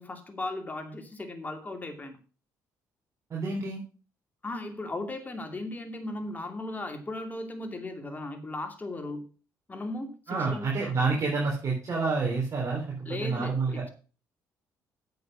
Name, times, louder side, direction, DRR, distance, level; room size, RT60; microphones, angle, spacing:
voice 1, 0.0-2.2 4.4-9.2 9.7-10.9 13.0-13.9, left 2 dB, 25° left, 5 dB, 2.4 m, -37 dB
voice 2, 3.3-3.8 10.3-13.0 13.2-13.8, right 4 dB, 45° right, -2 dB, 3.6 m, -28 dB
8.2 x 6.8 x 6.1 m, 0.35 s
cardioid pair, 90°, 7 cm